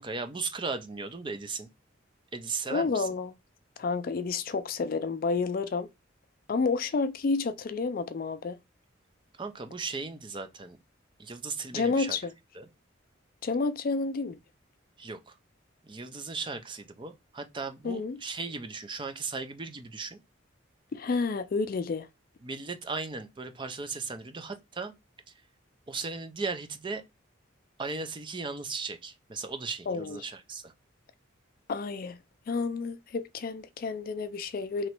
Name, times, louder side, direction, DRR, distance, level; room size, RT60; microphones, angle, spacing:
voice 1, 0.0-1.7 2.3-3.1 9.4-10.8 11.2-12.2 12.5-12.7 15.0-15.3 15.9-20.2 22.4-24.9 25.9-27.0 27.8-30.7, right 4 dB, 25° right, 0.5 m, -37 dB
voice 2, 2.7-3.3 3.8-5.9 6.5-8.6 11.7-12.3 13.4-14.4 17.8-18.2 20.9-22.1 29.9-30.2 31.7-32.2 32.5-34.9, left 4 dB, 45° left, 0.4 m, -30 dB
3.0 x 2.9 x 4.4 m
head